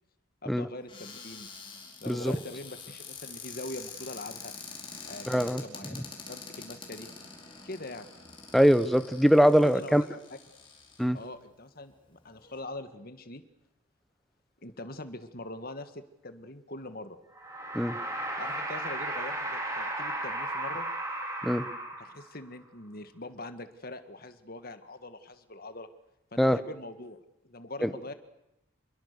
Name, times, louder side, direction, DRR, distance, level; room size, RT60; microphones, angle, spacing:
voice 1, 0.4-1.5 2.0-4.5 5.1-6.0 6.3-7.1 7.6-8.1 9.6-10.2 11.1-13.4 14.6-17.2 18.4-20.9 22.0-25.9 26.3-28.1, left 2 dB, 45° left, 9 dB, 1.9 m, -43 dB
Cupboard open or close, 0.9-11.3 11.9-12.0 12.3-12.6, left 5 dB, 25° left, 4.7 m, -46 dB
voice 2, 5.3-5.6 8.5-10.0 11.0-11.2 17.7-18.0 21.4-21.7 26.4-26.6 27.8-27.9, equal, ahead, 11 dB, 1.0 m, -22 dB
sound 1, 17.3-22.4, right 1 dB, 15° right, 4.8 m, -35 dB
27.5 x 22.0 x 6.9 m, 0.88 s
head